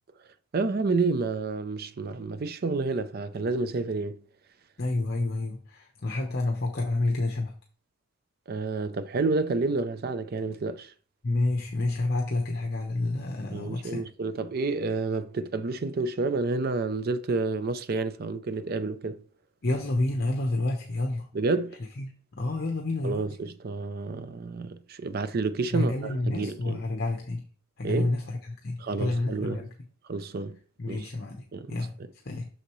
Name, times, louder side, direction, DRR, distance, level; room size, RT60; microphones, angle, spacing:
voice 1, 0.5-4.2 8.5-10.9 13.5-19.2 21.3-21.8 23.0-26.8 27.8-28.1 28.8-29.6 30.1-30.6 30.9-31.1 31.5-31.8, right 3 dB, 45° right, 0.5 m, -29 dB
voice 2, 4.8-7.5 11.2-14.0 19.6-21.3 22.0-22.1 22.4-23.3 25.7-27.4 27.8-29.7 30.8-32.5, left 2 dB, 50° left, 0.9 m, -29 dB
6.5 x 6.4 x 3.1 m
head